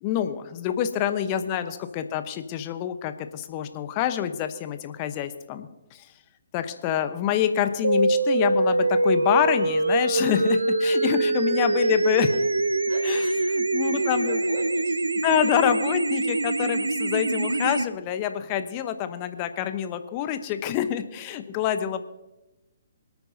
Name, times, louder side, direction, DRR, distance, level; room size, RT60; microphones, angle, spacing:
voice 1, 0.0-6.1 6.5-12.3 13.0-14.4 15.2-22.0, left 10 dB, 30° left, 10 dB, 0.9 m, -27 dB
voice 2, 1.4-2.1 11.8-12.4 12.9-13.0 13.9-15.5 16.2-16.4 21.3-21.5, right 2 dB, 35° right, -4 dB, 5.0 m, -43 dB
sound 1, 7.8-17.8, right 2 dB, 75° right, 0.7 m, -24 dB
25.5 x 9.2 x 2.8 m, 0.97 s
figure-of-eight pair, 130°, 0 cm